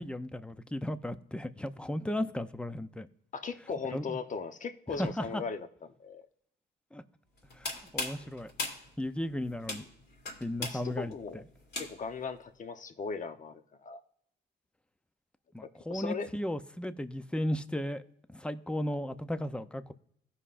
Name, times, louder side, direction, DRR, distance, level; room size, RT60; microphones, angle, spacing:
voice 1, 0.0-3.1 3.9-4.2 5.0-5.4 6.9-7.0 7.6-8.5 9.0-9.8 10.4-11.1 15.5-18.0 18.3-19.9, left 1 dB, 5° left, 11 dB, 0.6 m, -35 dB
voice 2, 3.3-5.7 6.0-6.3 10.6-11.4 11.8-14.0 15.9-16.3, left 5 dB, 40° left, 8 dB, 0.9 m, -38 dB
sound 1, 7.4-12.2, left 3 dB, 55° left, 2.3 m, -39 dB
15.5 x 5.6 x 2.5 m, 0.71 s
cardioid pair, 90°, 20 cm